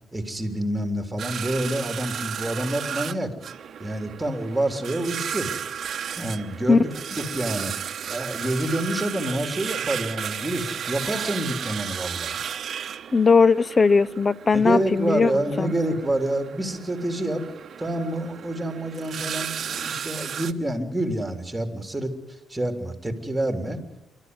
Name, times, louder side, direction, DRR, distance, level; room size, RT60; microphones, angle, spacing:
voice 1, 0.1-3.3 3.8-5.5 6.2-6.9 7.2-7.7 8.1-12.4 14.5-17.5 17.8-22.1 22.5-23.8, right 1 dB, 10° right, 5 dB, 3.4 m, -27 dB
sound 1, 1.2-20.5, right 8 dB, 55° right, 1.0 m, -34 dB
voice 2, 13.1-15.3 15.6-15.7, left 4 dB, 30° left, 20 dB, 0.7 m, -18 dB
27.5 x 12.5 x 9.7 m, 0.97 s
cardioid pair, 90°, 0 cm